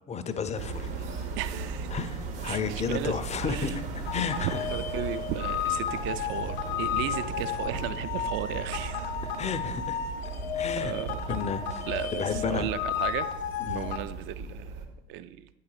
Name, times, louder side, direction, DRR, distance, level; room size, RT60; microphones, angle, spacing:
voice 1, 0.1-1.3 1.9-4.6 9.2-10.0 10.5-10.9 11.3-11.8 12.1-12.7 13.6-13.9, left 6 dB, 20° left, 11 dB, 0.5 m, -32 dB
sound 1, 0.6-14.9, right 4 dB, 60° right, 1.0 m, -37 dB
voice 2, 1.4-1.9 2.4-3.8 4.4-9.2 10.7-11.2 11.9-13.3 13.7-15.5, right 12 dB, 40° right, 14 dB, 0.4 m, -35 dB
sound 2, 4.0-14.0, left 9 dB, 65° left, 0.6 m, -33 dB
8.2 x 3.9 x 4.8 m, 0.90 s
figure-of-eight pair, 65°, 32 cm